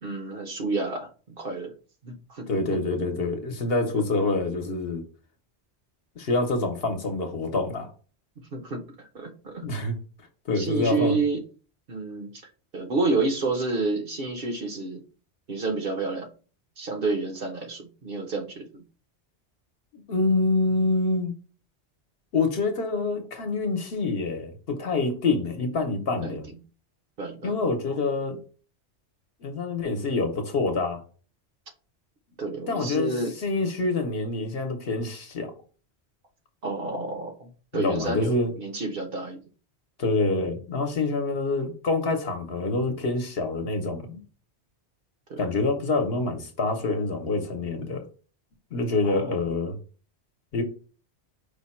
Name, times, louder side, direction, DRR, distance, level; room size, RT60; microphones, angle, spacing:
voice 1, 0.0-1.7 2.0-2.5 8.5-9.7 10.6-11.4 11.9-12.4 12.7-15.0 15.5-16.3 16.8-18.8 26.2-26.6 27.2-27.5 32.4-33.3 36.6-39.4 45.3-45.4 49.0-49.4, right 3 dB, 55° right, 1.0 m, -29 dB
voice 2, 2.5-5.0 6.2-7.9 9.6-10.0 10.5-11.2 19.9-21.3 22.3-26.4 27.4-28.4 29.4-31.0 32.7-35.5 37.7-38.5 40.0-44.2 45.4-48.1 48.7-49.8 50.5-50.6, left 3 dB, 60° left, 1.0 m, -26 dB
5.0 x 2.2 x 4.2 m
omnidirectional pair, 1.1 m